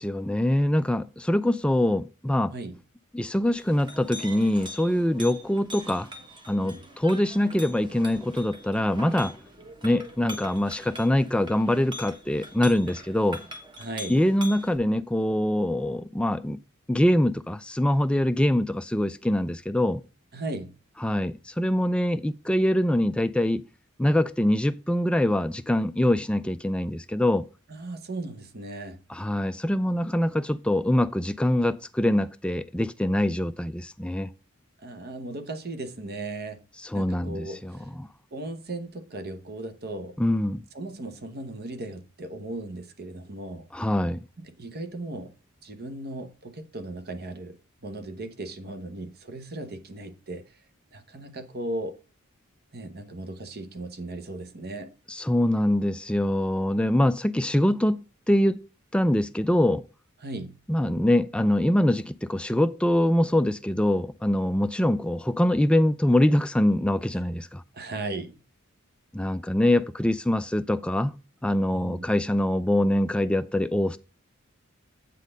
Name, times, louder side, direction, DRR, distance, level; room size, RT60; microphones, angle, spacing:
voice 1, 0.0-2.5 3.1-6.1 6.5-9.4 9.8-13.4 14.1-16.6 16.9-20.0 21.0-23.6 24.0-27.5 29.1-34.3 36.9-37.7 38.0-38.1 40.2-40.6 43.7-44.2 55.1-58.6 58.9-59.8 60.7-67.6 69.1-71.1 71.4-74.0, left 1 dB, 5° left, 0.3 m, -24 dB
Chink clink, 3.4-14.8, equal, 20° right, 1.3 m, -43 dB
voice 2, 13.8-14.2 20.3-20.8 27.7-29.0 34.8-36.6 36.9-37.9 38.3-40.2 40.7-43.7 44.4-45.3 45.6-50.5 50.9-52.0 52.7-54.9 60.2-60.6 67.7-68.4 71.7-72.1, right 2 dB, 50° right, 0.9 m, -37 dB
8.3 x 4.0 x 6.5 m
head